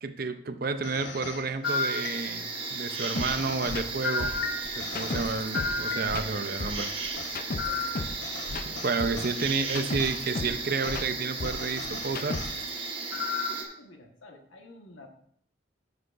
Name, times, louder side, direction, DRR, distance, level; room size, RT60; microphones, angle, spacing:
voice 1, 0.0-4.4 4.8-6.9 8.8-12.4, right 4 dB, 50° right, 10 dB, 0.6 m, -30 dB
sound 1, 0.8-2.6 3.3-6.4 6.8-9.4 10.0-10.2 10.8-11.0 11.4-12.5 13.1-13.7, left 4 dB, 70° left, 1.0 m, -34 dB
sound 2, 1.6-13.6, right 4 dB, 25° right, 1.3 m, -36 dB
sound 3, 3.2-3.3 3.6-3.8 4.2-5.8 6.1-8.2 8.5-10.6 10.8-12.7, left 3 dB, 45° left, 0.5 m, -35 dB
voice 2, 13.3-15.1, left 1 dB, 90° left, 3 dB, 1.4 m, -50 dB
13.0 x 6.4 x 2.5 m, 0.65 s
head